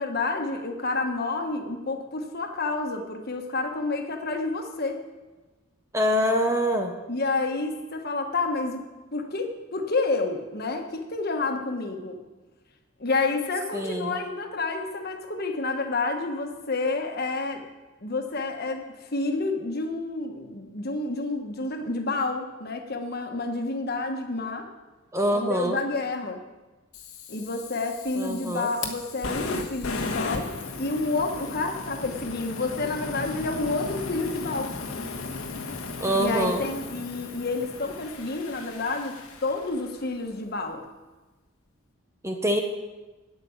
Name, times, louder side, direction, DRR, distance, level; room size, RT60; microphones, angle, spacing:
voice 1, 0.0-5.0 7.1-12.2 13.0-17.6 18.0-24.7 25.3-26.4 27.3-34.7 36.1-39.1 39.4-40.8, left 3 dB, 45° left, 4 dB, 1.3 m, -29 dB
voice 2, 5.9-6.9 13.7-14.2 25.1-25.8 28.2-28.7 36.0-36.6 42.2-42.6, equal, 15° right, 4 dB, 0.7 m, -25 dB
Fire, 26.9-40.1, left 3 dB, 85° left, 1.4 m, -36 dB
9.7 x 8.7 x 7.2 m, 1.2 s
head